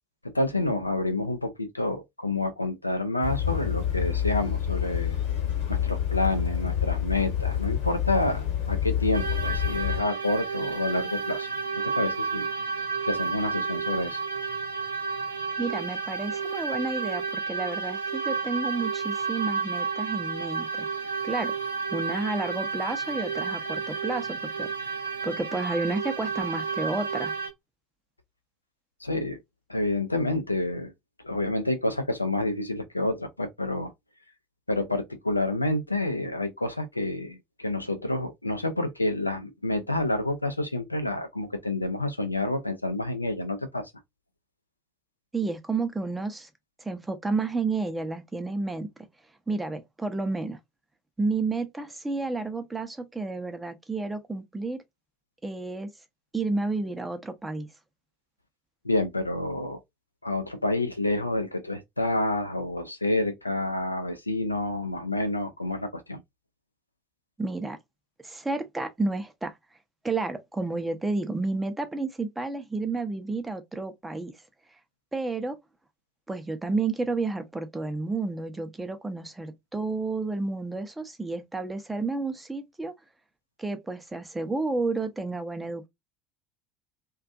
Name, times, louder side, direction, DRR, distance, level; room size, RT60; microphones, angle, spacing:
voice 1, 0.3-5.2 5.7-11.5 11.8-12.5 13.0-14.2 29.0-29.4 29.7-30.9 31.2-33.9 34.7-43.9 58.8-59.8 60.2-66.2, left 2 dB, 90° left, 0.3 m, -28 dB
sound 1, 3.2-10.0, left 10 dB, 65° left, 1.0 m, -28 dB
sound 2, 9.1-27.5, right 5 dB, 80° right, 0.5 m, -31 dB
voice 2, 15.6-20.9 21.2-21.5 21.9-24.7 25.2-27.3 45.3-46.5 46.8-48.9 49.5-50.6 51.2-54.8 55.4-55.9 56.3-57.7 67.4-67.8 68.2-69.5 70.0-74.3 75.1-75.6 76.3-82.9 83.6-85.9, right 3 dB, 10° right, 0.5 m, -31 dB
2.5 x 2.2 x 2.3 m
figure-of-eight pair, 70°, 0 cm